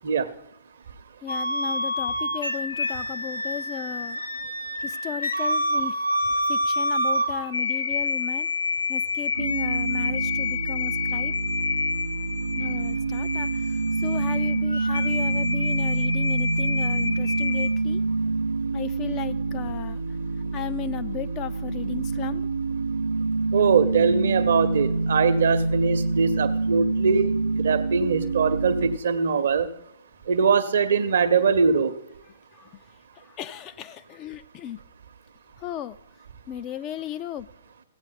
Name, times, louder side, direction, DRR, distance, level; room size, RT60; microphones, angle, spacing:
voice 1, 1.2-4.2 4.8-5.9 6.5-8.5 8.9-11.3 12.6-13.7 14.0-18.0 18.7-20.0 20.5-22.4 32.6-32.7 33.2-34.8 35.6-36.0 36.5-37.5, left 10 dB, 30° left, 11 dB, 0.3 m, -35 dB
sound 1, 1.3-17.7, left 2 dB, 75° left, 0.7 m, -28 dB
sound 2, 9.4-29.0, right 3 dB, 80° right, 0.4 m, -27 dB
voice 2, 23.5-29.7 30.3-31.9, right 5 dB, 60° right, 11 dB, 0.8 m, -22 dB
15.5 x 8.8 x 4.0 m, 0.86 s
figure-of-eight pair, 115°, 0 cm